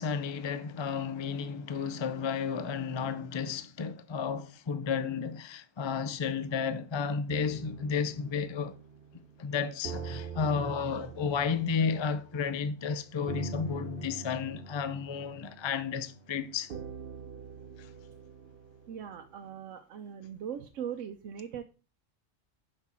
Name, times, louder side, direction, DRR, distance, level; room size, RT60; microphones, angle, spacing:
voice 1, 0.0-8.7 9.4-16.7 17.8-17.9, left 6 dB, 40° left, 0.4 m, -32 dB
sound 1, 7.3-19.4, right 4 dB, 50° right, 0.9 m, -44 dB
voice 2, 18.9-21.6, right 8 dB, 80° right, 1.0 m, -40 dB
6.0 x 5.6 x 4.2 m
omnidirectional pair, 1.3 m